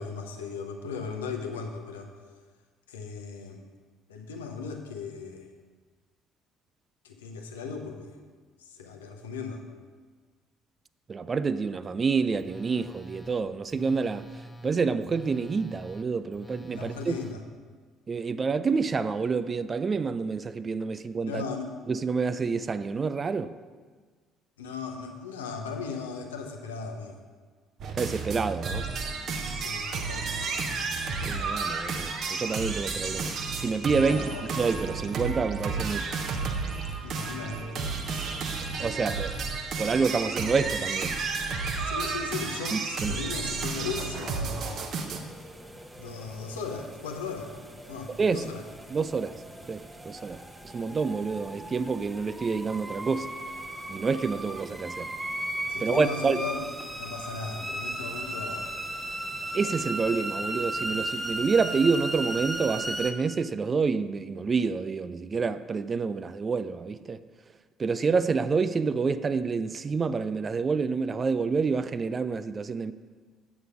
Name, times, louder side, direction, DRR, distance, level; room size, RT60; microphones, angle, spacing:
voice 1, 0.0-2.1 2.9-3.6 4.1-5.5 7.0-8.2 8.6-9.6 16.7-17.4 21.3-21.7 24.6-27.2 29.5-30.7 34.0-34.5 37.0-38.3 41.9-44.8 46.0-47.5 47.9-48.6 55.7-56.7 57.0-58.6, left 5 dB, 75° left, 0.8 m, -37 dB
voice 2, 11.1-14.3 14.6-17.2 18.1-21.4 21.9-23.5 27.9-28.9 31.2-34.2 34.6-36.1 38.8-39.4 39.8-41.2 42.7-43.2 48.2-48.5 48.9-49.4 49.7-53.3 53.9-55.1 55.8-56.4 59.5-67.2 67.8-72.9, right 5 dB, 30° right, 0.3 m, -28 dB
Telephone, 12.4-17.4, right 1 dB, 20° left, 0.6 m, -46 dB
sound 1, 27.8-45.2, right 4 dB, 50° right, 0.8 m, -32 dB
sound 2, 44.5-63.1, right 1 dB, 10° right, 0.8 m, -36 dB
8.0 x 6.0 x 5.1 m
figure-of-eight pair, 50°, 0 cm